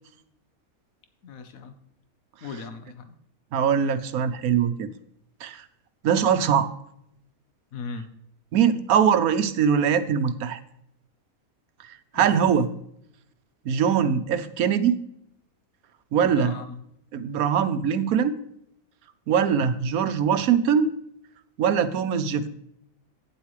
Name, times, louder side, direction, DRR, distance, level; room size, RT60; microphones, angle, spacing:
voice 1, 1.2-1.7 2.4-3.1 7.7-8.1 12.1-12.3 16.2-16.8, left 4 dB, 75° left, 8 dB, 1.5 m, -38 dB
voice 2, 3.5-4.9 5.4-5.6 6.0-6.7 8.5-10.6 12.1-12.7 13.6-15.0 16.1-16.5 17.1-18.3 19.3-20.9 21.6-22.5, right 7 dB, 90° right, 11 dB, 1.2 m, -22 dB
11.5 x 9.8 x 3.2 m, 0.74 s
omnidirectional pair, 1.5 m